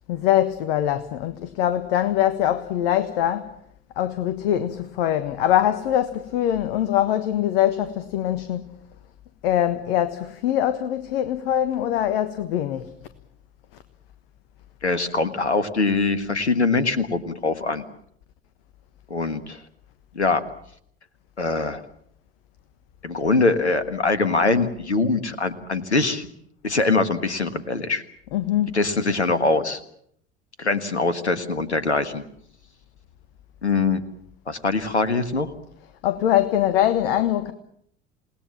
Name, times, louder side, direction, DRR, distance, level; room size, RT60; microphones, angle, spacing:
voice 1, 0.1-3.5 4.0-8.8 9.4-12.9 28.3-28.8 36.0-37.5, left 11 dB, 60° left, 1.4 m, -23 dB
voice 2, 14.8-17.8 19.1-19.6 20.1-20.4 21.4-21.8 23.0-26.3 26.6-28.0 28.7-29.8 30.6-32.2 33.6-34.0 34.5-35.5, left 3 dB, 85° left, 1.6 m, -23 dB
28.5 x 19.0 x 7.2 m
figure-of-eight pair, 65°, 33 cm